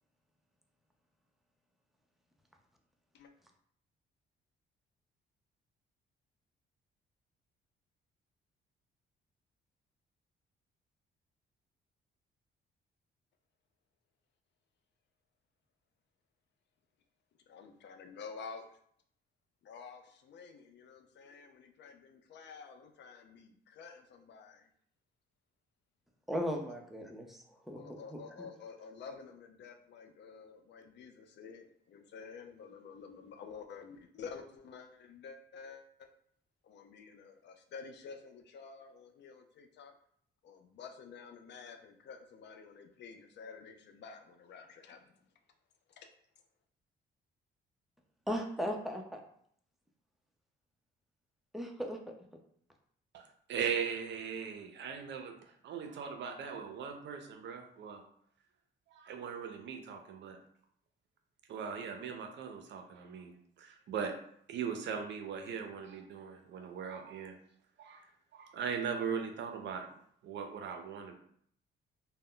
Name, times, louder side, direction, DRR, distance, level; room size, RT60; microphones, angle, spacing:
voice 1, 17.5-18.8 19.6-24.7 27.7-36.1 36.6-39.9 40.4-45.2 45.9-46.0, left 5 dB, 60° left, 5 dB, 0.4 m, -50 dB
voice 2, 26.3-28.5 48.3-49.2 51.5-52.0, equal, ahead, 1 dB, 0.5 m, -37 dB
voice 3, 53.1-58.0 58.9-60.4 61.5-64.1 64.5-67.4 67.8-69.9 70.2-71.1, right 6 dB, 65° right, 4 dB, 0.5 m, -39 dB
2.1 x 2.1 x 3.7 m, 0.65 s
cardioid pair, 90°, 20 cm